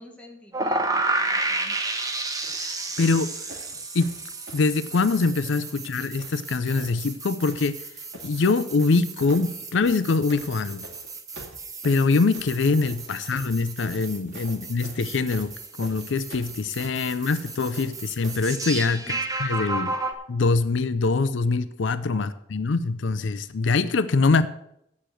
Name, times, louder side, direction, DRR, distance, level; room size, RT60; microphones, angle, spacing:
voice 1, 0.0-1.8 19.1-19.2 22.1-22.3, left 1 dB, 5° left, 0 dB, 1.7 m, -48 dB
sound 1, 0.5-20.1, right 3 dB, 20° right, 0.9 m, -32 dB
sound 2, 1.8-2.0 2.4-5.9 6.2-7.2 7.4-8.3 8.9-9.6 9.8-18.5 19.3-19.4, right 2 dB, 85° right, 2.2 m, -47 dB
voice 2, 3.0-3.3 3.9-4.1 4.5-7.8 8.2-10.8 11.8-15.5 15.8-19.0 19.4-20.0 20.3-24.5, left 4 dB, 80° left, 14 dB, 0.5 m, -23 dB
8.4 x 6.6 x 7.6 m, 0.77 s
head